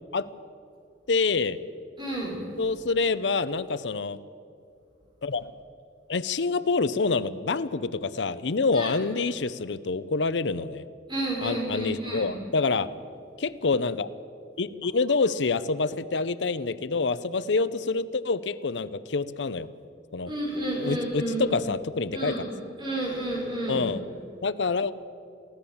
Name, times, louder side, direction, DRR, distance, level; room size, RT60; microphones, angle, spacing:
voice 1, 1.1-1.6 2.6-4.2 5.2-5.5 6.1-10.8 11.4-12.9 13.4-14.1 14.6-19.7 20.1-20.3 20.8-22.4 23.7-24.0 24.4-24.9, left 4 dB, 90° left, 15 dB, 0.7 m, -27 dB
voice 2, 2.0-2.4 8.7-8.9 11.1-12.3 20.2-21.5 22.1-22.4 22.8-23.9, right 1 dB, 25° right, -2 dB, 5.9 m, -30 dB
23.5 x 16.0 x 7.1 m, 2.4 s
head